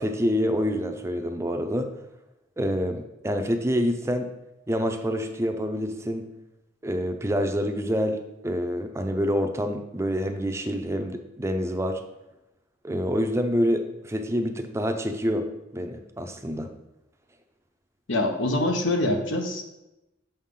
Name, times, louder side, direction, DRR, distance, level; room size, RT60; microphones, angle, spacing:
voice 1, 0.0-1.9 2.6-4.3 4.7-6.3 6.8-12.0 12.8-15.5 15.7-16.7, equal, 15° right, 6 dB, 0.5 m, -27 dB
voice 2, 18.1-19.6, left 1 dB, 85° left, 4 dB, 1.0 m, -24 dB
6.9 x 5.7 x 3.7 m, 0.94 s
head